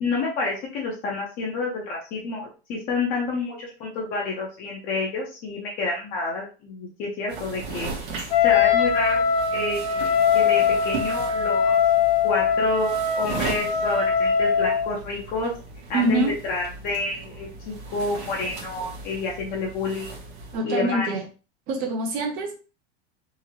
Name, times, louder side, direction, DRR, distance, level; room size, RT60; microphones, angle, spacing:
voice 1, 0.0-11.7 12.2-15.5 15.9-20.1 20.6-21.1, left 3 dB, 30° left, -2 dB, 0.7 m, -29 dB
sound 1, 7.3-20.5, right 4 dB, 85° right, 1.3 m, -37 dB
Wind instrument woodwind instrument, 8.3-14.9, left 7 dB, 85° left, 1.1 m, -21 dB
voice 2, 15.9-16.3 20.5-21.3 21.7-22.5, right 2 dB, 30° right, 4 dB, 0.6 m, -24 dB
3.7 x 2.1 x 3.0 m, 0.33 s
supercardioid pair, 170°, 31 cm